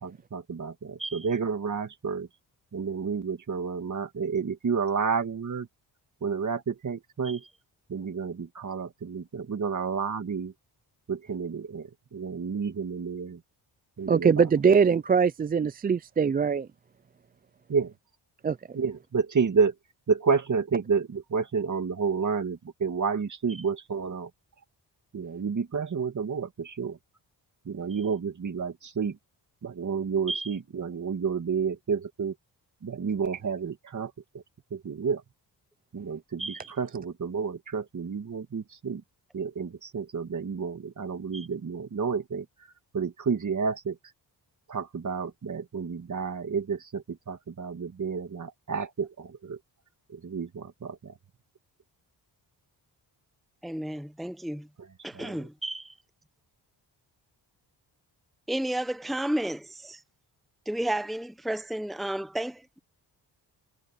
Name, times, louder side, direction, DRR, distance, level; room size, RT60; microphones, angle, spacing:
voice 1, 0.0-2.3 2.7-5.7 6.2-7.4 7.9-10.5 11.1-13.4 14.0-14.4 17.7-17.9 18.7-19.7 20.1-24.3 25.1-27.0 27.6-29.2 29.6-32.3 32.8-34.4 34.7-35.2 35.9-39.0 39.3-42.5 42.9-44.0 44.7-49.6 50.1-51.1 55.1-55.4, right 5 dB, 45° right, 2.4 m, -30 dB
voice 2, 14.1-16.7 18.4-18.6, right 6 dB, 25° right, 0.3 m, -22 dB
voice 3, 36.4-36.7 41.3-41.5 53.6-54.7 55.0-55.9 58.5-60.0 60.7-62.8, right 1 dB, ahead, 0.9 m, -32 dB
cardioid pair, 100°, 42 cm